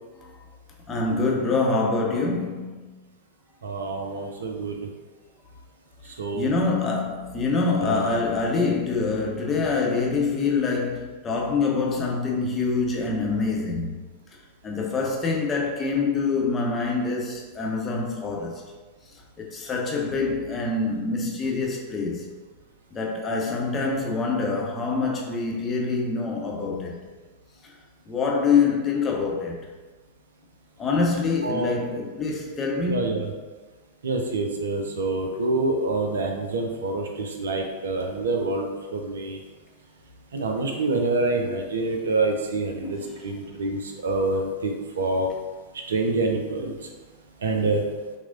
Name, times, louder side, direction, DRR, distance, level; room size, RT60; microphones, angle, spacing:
voice 1, 0.9-2.9 6.3-14.0 14.6-18.6 19.4-22.2 22.9-27.0 28.1-29.6 30.8-33.0 42.8-43.1, left 4 dB, 20° left, 0.7 m, -25 dB
voice 2, 3.6-4.8 6.2-6.5 7.8-8.1 31.4-31.8 32.9-33.3 34.0-39.4 40.3-45.3 45.7-46.8 47.4-47.8, right 2 dB, 65° right, 0.4 m, -26 dB
5.9 x 2.1 x 2.5 m
figure-of-eight pair, 90°, 0 cm